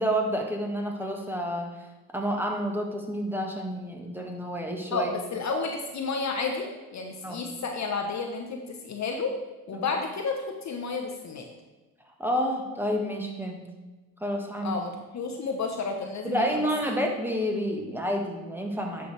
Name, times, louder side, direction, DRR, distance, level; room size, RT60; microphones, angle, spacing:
voice 1, 0.0-1.7 2.1-5.1 7.2-7.4 9.7-9.8 12.2-13.6 14.2-14.8 16.2-19.1, equal, 5° right, 1 dB, 1.5 m, -29 dB
voice 2, 4.9-9.3 9.7-11.5 14.6-16.7, left 4 dB, 35° left, 3 dB, 1.0 m, -31 dB
10.0 x 5.9 x 3.4 m, 1.2 s
hypercardioid pair, 65°, 46 cm